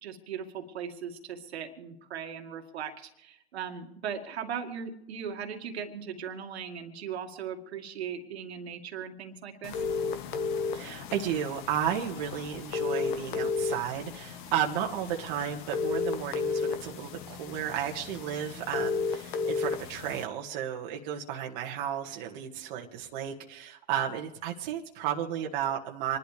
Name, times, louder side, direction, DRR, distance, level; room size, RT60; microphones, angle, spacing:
voice 1, 0.0-9.8, right 7 dB, 70° right, 4 dB, 2.1 m, -38 dB
sound 1, 9.6-20.2, left 5 dB, 45° left, 1.4 m, -33 dB
voice 2, 10.7-26.2, right 9 dB, 40° right, 1 dB, 1.7 m, -33 dB
27.5 x 11.5 x 3.4 m, 0.85 s
hypercardioid pair, 135°, 34 cm